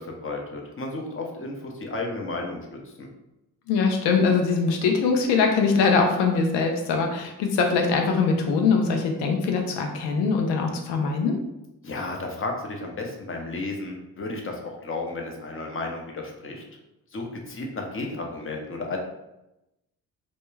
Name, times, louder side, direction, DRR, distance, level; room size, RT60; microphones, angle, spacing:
voice 1, 0.0-3.1 11.8-16.6 17.1-19.0, left 2 dB, 30° left, 1 dB, 0.6 m, -33 dB
voice 2, 3.7-11.4, left 4 dB, 85° left, 3 dB, 0.6 m, -22 dB
2.2 x 2.1 x 3.1 m, 0.92 s
supercardioid pair, 60°, 41 cm